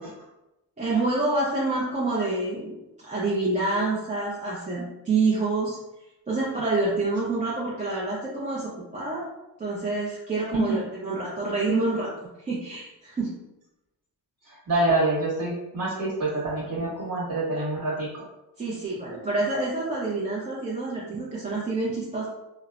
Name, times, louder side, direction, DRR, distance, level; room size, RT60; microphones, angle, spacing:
voice 1, 0.8-5.8 6.3-9.3 9.6-13.3 18.6-22.3, right 3 dB, 20° right, -6 dB, 0.5 m, -27 dB
voice 2, 14.5-18.1, right 2 dB, 45° right, -6 dB, 1.2 m, -26 dB
3.0 x 2.0 x 2.4 m, 0.94 s
cardioid pair, 90°, 43 cm